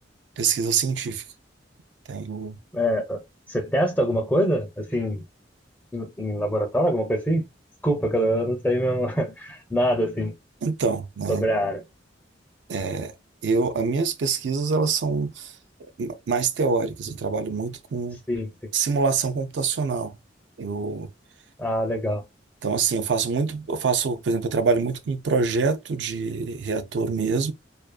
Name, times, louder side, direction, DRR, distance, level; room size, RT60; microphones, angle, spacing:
voice 1, 0.4-1.2 2.1-2.6 10.6-11.5 12.7-13.1 13.4-15.5 16.0-18.2 18.7-20.2 20.6-21.1 22.6-27.5, right 4 dB, 70° right, 0.4 m, -25 dB
voice 2, 2.7-3.2 3.5-5.2 5.9-7.4 7.8-10.3 11.3-11.8 18.3-18.5 21.6-22.2, equal, 10° left, 0.5 m, -24 dB
2.5 x 2.4 x 2.2 m
head